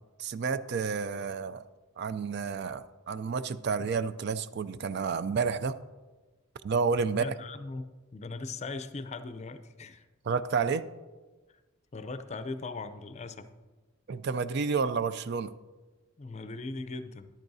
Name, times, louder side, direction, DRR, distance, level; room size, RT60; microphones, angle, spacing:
voice 1, 0.2-1.6 2.0-5.8 6.6-7.3 10.3-10.9 14.1-15.5, right 5 dB, 55° right, 13 dB, 0.4 m, -30 dB
voice 2, 7.1-10.0 11.9-13.5 16.2-17.3, left 3 dB, 35° left, 11 dB, 0.5 m, -39 dB
13.5 x 11.0 x 2.7 m, 1.2 s
head